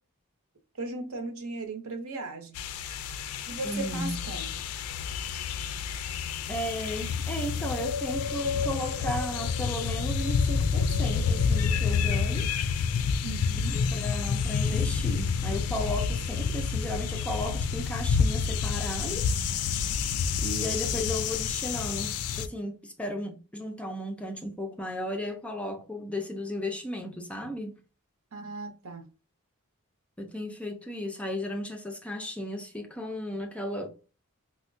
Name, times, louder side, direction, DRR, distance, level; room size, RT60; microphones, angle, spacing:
voice 1, 0.8-2.6 3.5-4.5 13.2-13.8 28.3-29.0, right 2 dB, 65° right, 0.8 m, -37 dB
sound 1, 2.6-22.5, left 6 dB, 85° left, 0.4 m, -29 dB
voice 2, 3.6-4.2 6.5-12.5 13.6-19.7 20.4-27.8 30.2-33.9, left 1 dB, 5° left, 0.3 m, -35 dB
4.3 x 2.1 x 2.5 m
head